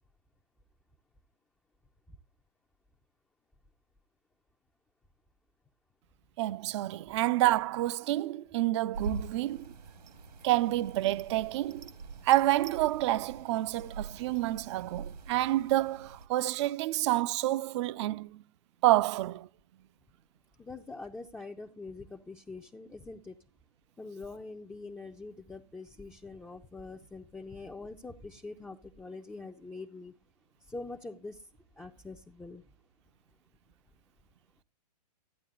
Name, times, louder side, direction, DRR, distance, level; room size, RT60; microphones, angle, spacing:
voice 1, 6.4-9.7 10.4-11.9 12.2-18.4 18.8-19.5, right 16 dB, 45° right, 0.8 m, -28 dB
sound 1, 8.9-16.3, right 4 dB, 75° right, 2.1 m, -44 dB
voice 2, 20.6-23.4 24.0-30.1 30.6-31.5 31.8-32.6, left 3 dB, 5° left, 0.8 m, -44 dB
14.0 x 9.1 x 3.9 m
hypercardioid pair, 120°, 21 cm